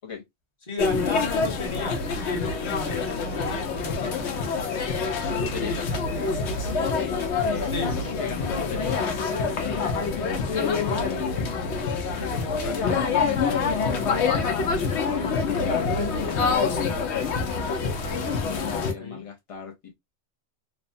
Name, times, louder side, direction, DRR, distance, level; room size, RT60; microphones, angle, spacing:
voice 1, 0.7-2.0 2.3-4.1 7.7-7.9 19.0-19.2, left 3 dB, 30° left, 0.9 m, -33 dB
sound 1, 0.8-18.9, left 4 dB, 75° left, 0.9 m, -26 dB
voice 2, 5.3-5.8 6.8-9.0 10.5-11.6 12.1-13.2 14.9-17.9 18.4-19.9, left 6 dB, 50° left, 0.4 m, -36 dB
3.1 x 2.0 x 2.5 m
omnidirectional pair, 1.2 m